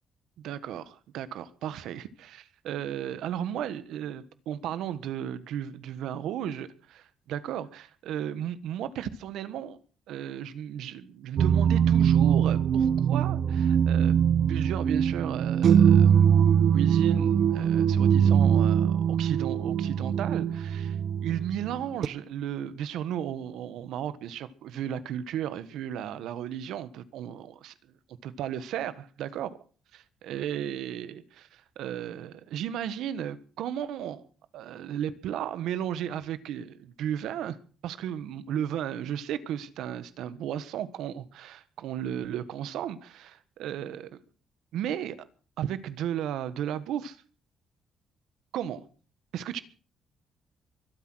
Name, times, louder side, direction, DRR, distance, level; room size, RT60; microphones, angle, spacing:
voice 1, 0.4-9.8 10.1-14.2 14.5-16.2 16.7-27.7 28.2-29.6 29.9-34.2 34.5-37.6 37.8-44.2 44.7-45.2 45.6-47.2 48.5-48.8 49.3-49.6, right 10 dB, 85° right, 1.4 m, -34 dB
sound 1, 11.4-22.1, right 8 dB, 60° right, 0.8 m, -22 dB
23.5 x 8.7 x 6.3 m
cardioid pair, 90°, 0 cm